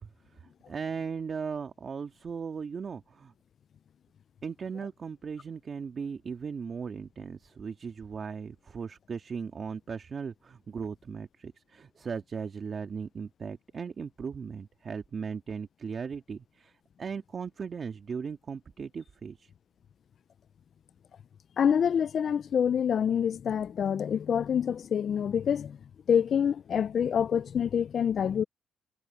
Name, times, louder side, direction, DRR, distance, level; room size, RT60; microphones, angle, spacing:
voice 1, 0.0-3.3 4.4-19.5, right 6 dB, 45° right, 2.2 m, -38 dB
voice 2, 21.6-25.8 26.1-28.4, left 8 dB, 55° left, 0.5 m, -26 dB
cardioid pair, 90°, 0 cm